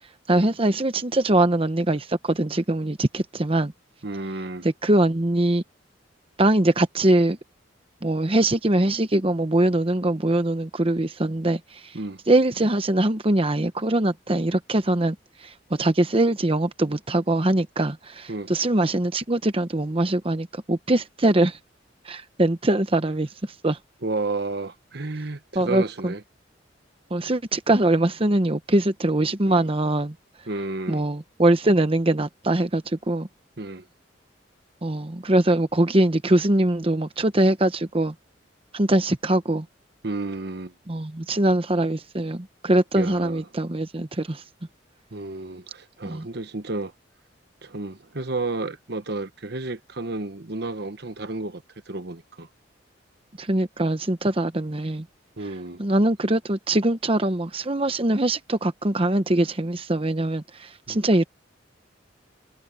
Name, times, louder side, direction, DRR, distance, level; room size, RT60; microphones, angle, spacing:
voice 1, 0.3-3.7 4.6-5.6 6.4-7.4 8.0-12.0 12.3-21.6 22.0-23.8 25.5-26.1 27.1-30.1 30.9-33.3 34.8-38.1 38.7-39.7 40.9-44.4 46.0-46.3 53.4-55.1 55.8-61.3, right 1 dB, 30° right, 1.0 m, -22 dB
voice 2, 4.0-4.7 11.9-12.2 18.3-18.5 24.0-26.2 29.5-29.7 30.5-31.0 33.6-33.8 40.0-40.7 42.9-43.4 45.1-46.9 47.6-52.5 55.4-55.8 60.9-61.0, right 2 dB, 60° right, 1.3 m, -32 dB
head